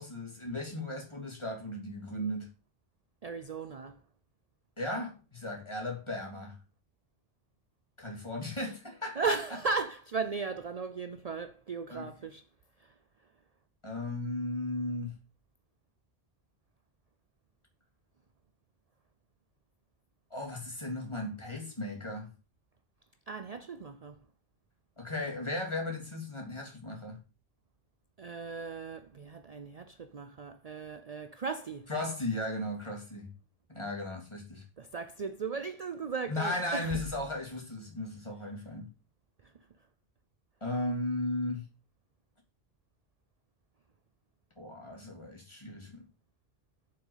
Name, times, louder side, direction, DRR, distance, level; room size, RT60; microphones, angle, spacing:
voice 1, 0.0-2.5 4.8-6.6 8.0-9.2 11.9-12.1 13.8-15.2 20.3-22.3 25.0-27.2 31.9-33.3 33.7-34.6 36.3-38.9 40.6-41.7 44.6-46.0, left 1 dB, 30° left, 3.3 m, -36 dB
voice 2, 3.2-4.0 9.2-12.5 12.8-13.0 23.3-24.2 28.2-31.9 34.8-36.9 39.4-39.5, right 4 dB, 45° right, 0.6 m, -36 dB
7.5 x 6.6 x 7.3 m
omnidirectional pair, 1.0 m